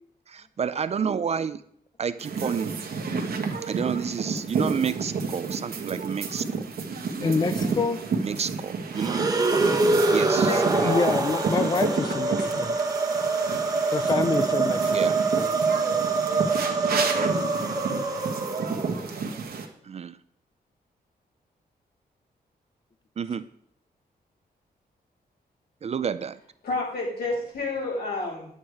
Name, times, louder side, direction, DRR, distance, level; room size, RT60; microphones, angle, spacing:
voice 1, 0.3-1.6 2.0-2.7 3.6-6.7 8.2-9.3 10.1-11.0 14.9-15.2 17.1-17.5 19.8-20.2 23.2-23.5 25.8-26.4, right 7 dB, 40° right, 14 dB, 0.5 m, -30 dB
sound 1, 2.2-19.7, right 4 dB, 70° right, 1.6 m, -30 dB
voice 2, 7.2-8.0 10.8-12.8 13.9-15.0 15.4-15.5, left 4 dB, 25° left, 10 dB, 0.4 m, -27 dB
sound 2, 8.9-19.2, right 3 dB, 20° right, 1.2 m, -25 dB
voice 3, 10.4-11.1 11.9-12.2 26.6-28.5, left 2 dB, 75° left, -4 dB, 5.7 m, -30 dB
11.0 x 8.8 x 4.8 m, 0.67 s
wide cardioid pair, 165°, 16 cm